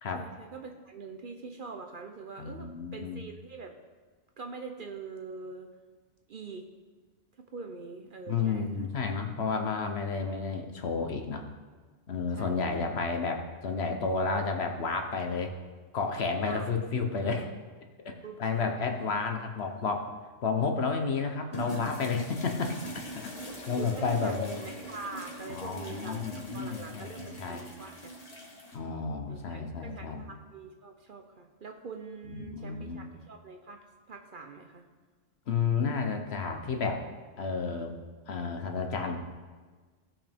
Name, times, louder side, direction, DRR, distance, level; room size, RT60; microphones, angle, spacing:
voice 1, 0.1-3.7 4.4-5.7 6.3-6.7 7.5-8.9 12.3-12.8 16.4-16.7 18.2-18.9 23.8-27.9 29.3-34.8, right 4 dB, 50° right, 4 dB, 0.7 m, -44 dB
voice 2, 2.4-3.2 8.3-11.4 12.1-15.5 15.9-17.5 18.0-20.1 20.4-22.7 23.2-23.3 23.7-24.7 25.5-27.6 28.7-30.2 32.3-33.0 35.5-37.0 37.4-37.9 38.3-39.2, left 4 dB, 60° left, 4 dB, 1.1 m, -31 dB
sound 1, 21.5-28.8, equal, 30° left, 1.3 m, -42 dB
17.0 x 5.8 x 3.5 m, 1.4 s
omnidirectional pair, 1.3 m